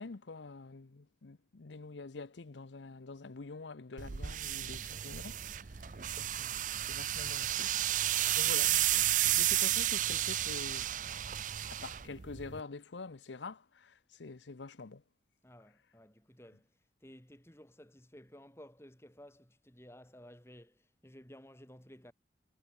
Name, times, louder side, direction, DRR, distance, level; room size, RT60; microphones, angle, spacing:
voice 1, 0.0-5.4 5.9-7.7 8.1-11.1 11.7-15.0, left 3 dB, 80° left, 0.8 m, -47 dB
sound 1, 4.0-12.6, right 13 dB, 45° right, 0.5 m, -32 dB
voice 2, 15.4-16.7 17.0-22.1, equal, 15° left, 2.8 m, -55 dB
head